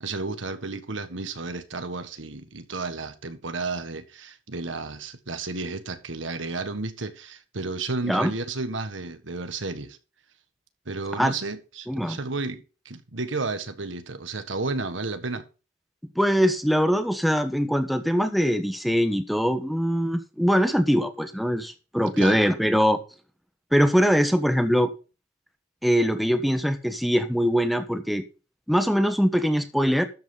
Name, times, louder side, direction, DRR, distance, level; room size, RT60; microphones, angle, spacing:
voice 1, 0.0-10.0 10.8-15.4 22.2-22.4, right 3 dB, 85° right, 1.5 m, -32 dB
voice 2, 11.9-12.2 16.1-23.0 23.7-24.9 25.8-28.2 28.7-30.1, equal, ahead, 1.1 m, -22 dB
12.5 x 8.3 x 3.8 m
head